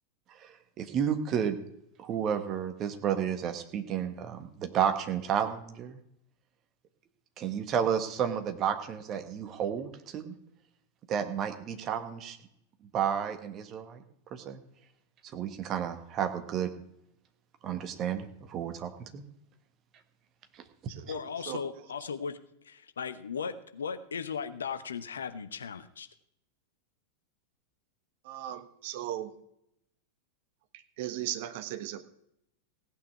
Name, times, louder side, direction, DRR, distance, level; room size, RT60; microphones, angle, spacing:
voice 1, 0.3-1.6 2.0-6.0 7.4-10.3 11.1-12.4 12.9-14.0 14.3-14.6 15.3-16.7 17.6-19.2 20.5-20.6, right 8 dB, 30° right, 1.6 m, -31 dB
voice 2, 21.1-22.4 22.6-26.1, left 6 dB, 70° left, 0.9 m, -37 dB
voice 3, 28.3-29.3 31.0-32.0, right 12 dB, 50° right, 1.1 m, -36 dB
17.0 x 9.1 x 4.8 m
figure-of-eight pair, 90°, 0 cm